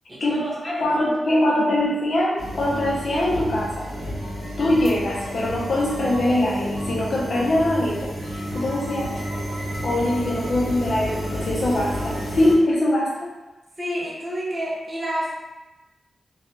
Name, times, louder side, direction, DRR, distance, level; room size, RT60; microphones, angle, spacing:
voice 1, 0.1-1.8 13.8-15.3, equal, 30° right, -4 dB, 0.7 m, -30 dB
voice 2, 0.8-3.9 4.6-9.1 9.8-13.3, left 1 dB, 65° left, -5 dB, 0.6 m, -22 dB
sound 1, 2.4-12.5, equal, 85° right, 0.8 m, -31 dB
sound 2, 4.1-12.5, right 1 dB, 55° right, 0.9 m, -42 dB
2.3 x 2.3 x 2.8 m, 1.1 s
wide cardioid pair, 100°, 0 cm